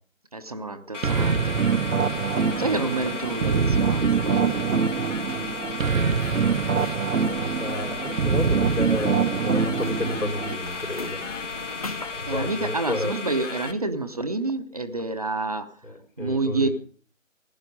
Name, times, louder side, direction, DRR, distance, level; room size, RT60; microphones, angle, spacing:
voice 1, 0.3-1.6 2.6-4.7 12.3-15.8 16.2-16.7, right 3 dB, 30° right, 0.7 m, -28 dB
sound 1, 0.9-13.7, left 4 dB, 65° left, 1.6 m, -35 dB
sound 2, 1.0-10.6, right 6 dB, 85° right, 0.9 m, -24 dB
sound 3, 2.0-12.5, left 3 dB, 30° left, 0.7 m, -41 dB
voice 2, 7.2-11.2 12.2-13.1 15.8-16.7, left 2 dB, 90° left, 4.6 m, -31 dB
15.5 x 11.0 x 5.2 m
figure-of-eight pair, 160°, 39 cm